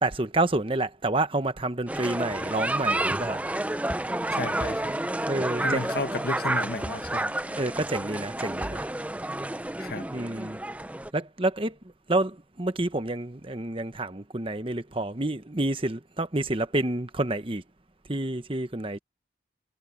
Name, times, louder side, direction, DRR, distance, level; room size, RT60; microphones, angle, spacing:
voice 1, 0.0-3.4 5.3-5.8 7.6-8.8 10.1-10.6 11.1-11.8 12.1-17.6 18.1-19.0, right 2 dB, 30° right, 1.2 m, -28 dB
sound 1, 1.9-11.1, right 1 dB, 10° right, 0.6 m, -30 dB
voice 2, 4.3-4.9 5.6-7.3 9.8-10.1, left 2 dB, 55° left, 1.5 m, -33 dB
head